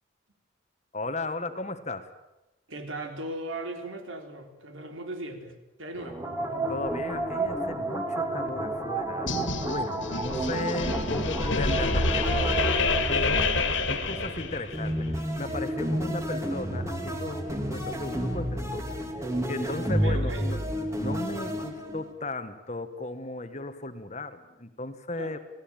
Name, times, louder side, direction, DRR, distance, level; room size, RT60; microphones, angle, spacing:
voice 1, 0.9-2.1 6.7-13.5 13.8-19.0 19.5-20.6 21.0-25.4, left 2 dB, 35° left, 10 dB, 1.6 m, -36 dB
voice 2, 2.7-6.3 19.8-20.5 25.2-25.4, right 1 dB, 75° right, 5 dB, 4.0 m, -38 dB
sound 1, 5.9-20.7, right 1 dB, 40° right, 5.5 m, -42 dB
sound 2, 6.0-14.2 14.7-22.1, right 1 dB, 15° right, 2.5 m, -31 dB
sound 3, 9.3-14.9, left 3 dB, 70° left, 2.6 m, -27 dB
28.5 x 18.0 x 9.1 m, 1.0 s
head